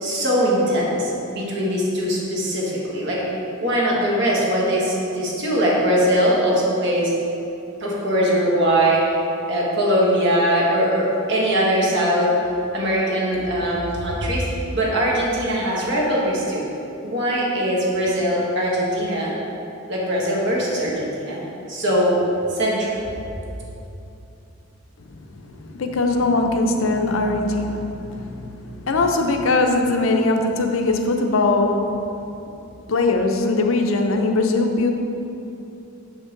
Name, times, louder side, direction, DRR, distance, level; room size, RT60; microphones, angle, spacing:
voice 1, 0.0-3.2 3.6-7.1 7.8-9.0 9.5-12.3 12.7-14.5 14.7-16.6 17.0-19.3 19.9-21.4 21.7-22.2 22.5-23.0, equal, 55° right, -5 dB, 1.4 m, -21 dB
voice 2, 25.6-32.0 32.9-34.9, left 2 dB, 70° left, 4 dB, 0.6 m, -21 dB
6.6 x 5.3 x 3.8 m, 2.8 s
head